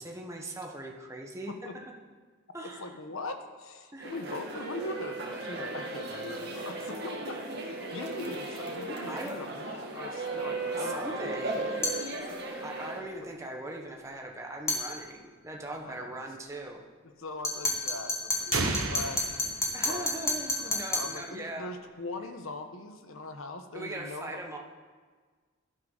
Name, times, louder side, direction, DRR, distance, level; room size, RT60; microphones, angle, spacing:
voice 1, 0.0-1.8 2.5-3.0 3.9-4.1 9.1-9.4 10.8-11.9 12.6-16.8 19.7-21.7 23.7-24.6, right 1 dB, 15° right, 0 dB, 1.2 m, -40 dB
voice 2, 2.8-11.4 11.7-11.9 13.0-13.3 15.7-16.2 17.0-19.3 19.8-20.1 20.6-24.4, left 2 dB, 80° left, 7 dB, 1.2 m, -41 dB
sound 1, 4.0-13.0, right 2 dB, 50° right, 1.9 m, -36 dB
sound 2, 11.8-12.1 14.7-14.9 17.4-21.2, left 2 dB, 15° left, 1.8 m, -30 dB
sound 3, 18.5-20.4, right 3 dB, 75° right, 1.1 m, -33 dB
17.0 x 11.5 x 4.0 m, 1.5 s
head